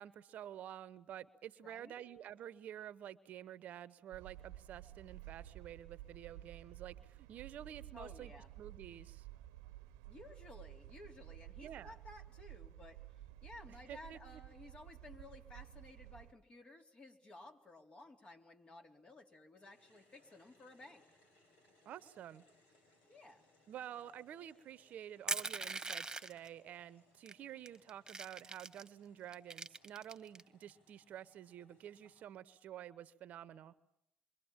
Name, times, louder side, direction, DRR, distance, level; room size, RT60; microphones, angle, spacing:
voice 1, 0.0-8.3 8.6-9.3 11.6-11.9 13.9-14.4 21.8-22.4 23.7-33.7, right 10 dB, 65° right, 16 dB, 0.9 m, -50 dB
voice 2, 1.6-2.1 7.9-8.5 10.1-13.0 13.4-21.0 23.1-23.5, left 2 dB, 40° left, 3 dB, 3.8 m, -56 dB
sound 1, 4.1-16.3, right 14 dB, 90° right, 0.9 m, -53 dB
sound 2, 19.5-32.2, left 2 dB, 75° left, 5.8 m, -71 dB
Crushing, 25.3-26.5 27.3-27.4 27.7-28.9 29.3-30.4, right 3 dB, 25° right, 1.5 m, -41 dB
27.0 x 24.0 x 7.3 m, 0.76 s
hypercardioid pair, 60°, 3 cm